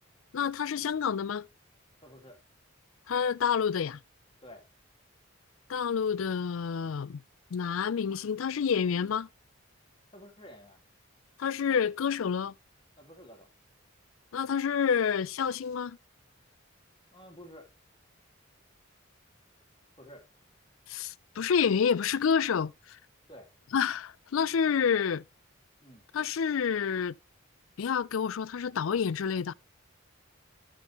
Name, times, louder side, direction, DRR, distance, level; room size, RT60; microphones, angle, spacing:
voice 1, 0.3-1.5 3.1-4.0 5.7-7.2 7.5-9.3 11.4-12.5 14.3-16.0 20.9-22.7 23.7-25.2 26.1-27.1 27.8-29.5, left 7 dB, 75° left, 0.4 m, -28 dB
voice 2, 2.0-2.4 4.4-4.6 10.1-10.8 13.0-13.5 17.1-17.7 20.0-20.2 23.3-23.5 25.8-26.1, equal, 25° left, 2.0 m, -50 dB
13.5 x 6.3 x 3.0 m
head